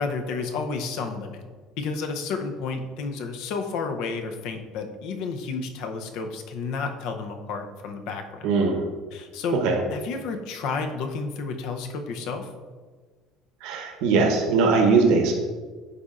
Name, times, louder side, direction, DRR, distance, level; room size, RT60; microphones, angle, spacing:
voice 1, 0.0-1.5 1.8-8.5 9.1-9.6 9.9-12.5, left 4 dB, 60° left, 5 dB, 0.6 m, -31 dB
voice 2, 8.4-8.8 9.6-9.8 13.6-15.3, right 4 dB, 75° right, 2 dB, 0.9 m, -20 dB
9.7 x 4.2 x 2.5 m, 1.4 s
cardioid pair, 170°, 0 cm